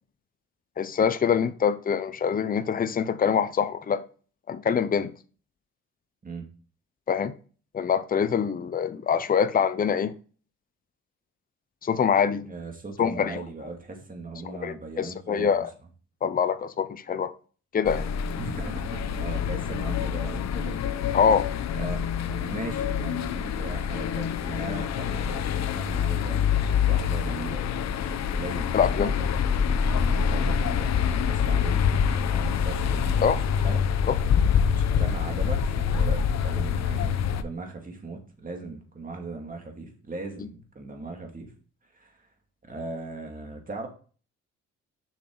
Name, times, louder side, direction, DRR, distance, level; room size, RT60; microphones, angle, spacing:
voice 1, 0.8-4.0 4.5-5.1 7.1-7.3 7.7-10.1 11.8-12.5 13.0-13.4 14.6-15.7 16.2-17.3 17.7-18.0 21.1-21.5 28.7-29.1 33.2-33.4 34.1-34.2, left 7 dB, 30° left, 0.6 m, -24 dB
voice 2, 12.5-15.7 18.3-20.8 21.1-21.2 21.7-26.6 26.9-27.6 28.4-29.3 29.7-33.8 34.7-41.5 41.9-42.2 42.7-43.9, right 3 dB, 30° right, 2.3 m, -38 dB
sound 1, 17.9-37.4, left 7 dB, 60° left, 0.8 m, -26 dB
7.1 x 5.9 x 3.9 m
cardioid pair, 90°, 30 cm